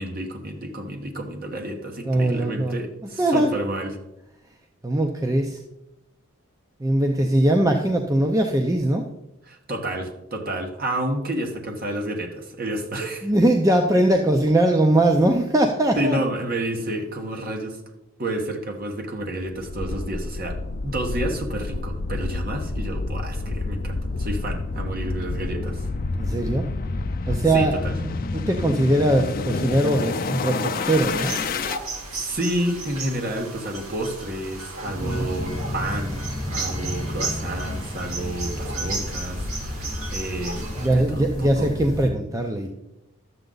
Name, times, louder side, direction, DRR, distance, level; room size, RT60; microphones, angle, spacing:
voice 1, 0.0-3.9 9.5-13.3 16.0-17.8 18.2-25.9 27.5-27.9 32.1-41.7, right 1 dB, 40° right, 2 dB, 1.4 m, -30 dB
voice 2, 2.0-2.8 3.0-3.5 4.8-5.6 6.8-9.1 13.2-16.2 26.1-26.7 27.3-31.4 34.8-35.3 40.6-42.7, right 1 dB, 15° right, 3 dB, 0.5 m, -21 dB
sound 1, 19.6-31.8, left 3 dB, 40° left, 0.5 m, -28 dB
sound 2, 30.8-40.9, right 3 dB, 80° right, 2.6 m, -34 dB
sound 3, 34.9-42.1, left 1 dB, 15° left, 1.8 m, -32 dB
12.0 x 7.9 x 3.9 m, 0.91 s
head